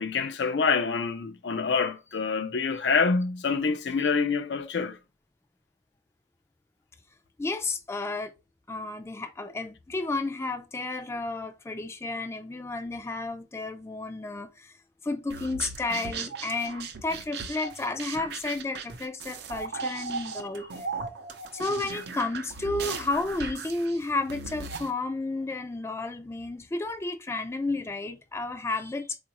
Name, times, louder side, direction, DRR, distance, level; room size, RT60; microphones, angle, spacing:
voice 1, 0.0-5.0, left 5 dB, 80° left, 0.5 m, -26 dB
voice 2, 7.4-8.3 8.7-14.7 15.0-20.9 21.5-29.2, left 2 dB, 15° left, 0.3 m, -32 dB
sound 1, 15.3-24.9, right 4 dB, 65° right, 0.6 m, -37 dB
3.9 x 2.4 x 2.8 m
head